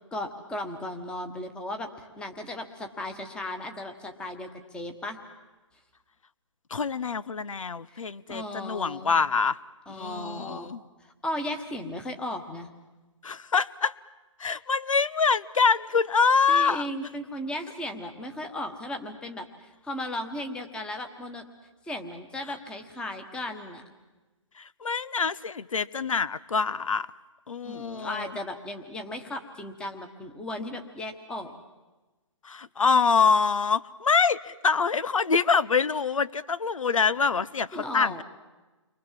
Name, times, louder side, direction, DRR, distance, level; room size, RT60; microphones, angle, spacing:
voice 1, 0.1-5.2 7.9-8.0 8.3-9.1 9.9-10.8 11.2-12.7 16.5-21.4 21.9-23.8 27.6-31.6 37.7-38.2, left 1 dB, 5° left, 6 dB, 1.3 m, -36 dB
voice 2, 6.7-9.6 9.9-10.8 13.2-13.9 14.4-16.9 24.6-27.1 27.5-28.3 32.4-38.2, left 5 dB, 90° left, 19 dB, 0.9 m, -25 dB
29.5 x 24.0 x 7.6 m, 1.2 s
hypercardioid pair, 160°, 16 cm